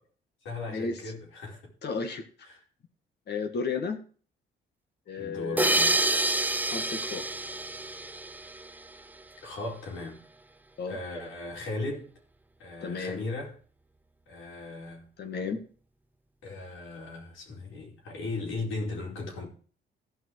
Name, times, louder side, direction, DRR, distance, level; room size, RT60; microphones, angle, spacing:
voice 1, 0.4-1.6 2.4-2.6 5.2-6.0 9.4-10.3 10.9-12.1 12.6-13.5 14.3-15.1 16.4-19.5, left 2 dB, 85° left, 4.7 m, -37 dB
voice 2, 1.8-2.5 3.3-4.0 5.1-5.9 6.7-7.2 10.8-11.0 12.8-13.2 15.2-15.6, left 5 dB, 55° left, 1.9 m, -33 dB
sound 1, 5.6-8.9, right 2 dB, 10° right, 0.7 m, -27 dB
15.0 x 5.7 x 4.8 m
cardioid pair, 90°, 20 cm